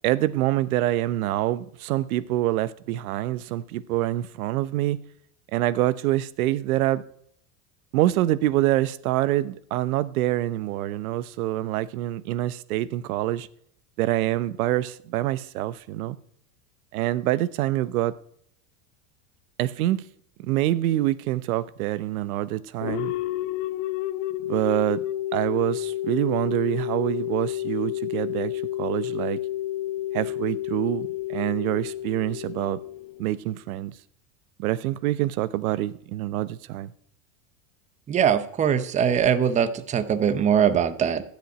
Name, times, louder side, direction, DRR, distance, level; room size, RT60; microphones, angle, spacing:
voice 1, 0.0-5.0 5.5-7.0 7.9-13.5 14.0-16.2 16.9-18.1 19.6-20.0 20.4-23.1 24.5-25.0 25.3-29.4 30.1-32.8 33.2-33.9 34.6-36.9, right 15 dB, 85° right, 0.8 m, -26 dB
sound 1, 22.8-33.5, left 14 dB, 50° left, 0.6 m, -30 dB
voice 2, 38.1-41.2, right 8 dB, 15° right, 0.7 m, -22 dB
13.0 x 5.2 x 9.1 m
supercardioid pair, 145°, 42 cm